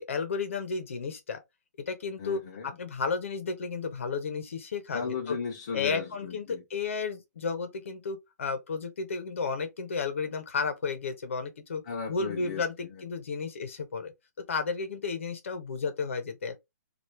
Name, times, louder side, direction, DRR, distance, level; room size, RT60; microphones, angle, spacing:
voice 1, 0.0-1.4 1.9-2.4 2.8-5.4 5.7-11.8 12.1-14.1 14.5-16.6, left 5 dB, 45° left, 0.9 m, -33 dB
voice 2, 2.2-2.8 4.9-6.6 11.8-12.6 12.9-13.0, left 5 dB, 20° left, 0.4 m, -36 dB
3.0 x 2.4 x 3.2 m
hypercardioid pair, 180°, 9 cm